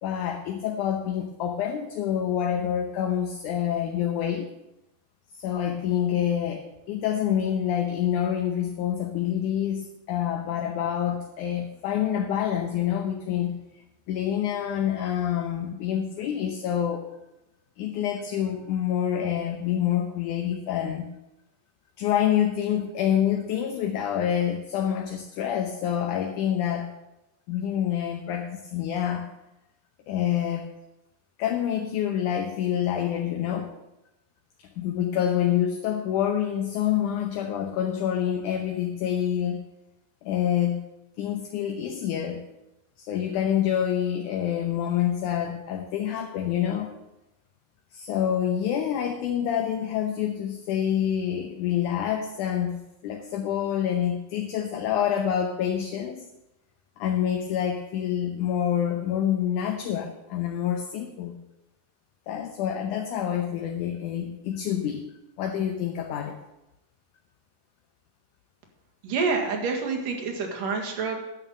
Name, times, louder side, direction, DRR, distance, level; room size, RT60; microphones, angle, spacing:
voice 1, 0.0-4.5 5.4-13.6 14.1-17.1 17.8-21.1 22.0-26.9 27.5-29.3 30.1-30.7 31.4-33.7 34.6-39.6 40.2-40.8 41.2-42.4 43.0-46.9 47.9-56.3 57.0-61.3 62.3-65.1 65.4-66.4, left 10 dB, 75° left, 4 dB, 2.2 m, -27 dB
voice 2, 69.0-71.3, right 4 dB, 75° right, 1 dB, 3.4 m, -28 dB
11.0 x 6.4 x 8.8 m, 0.92 s
omnidirectional pair, 3.9 m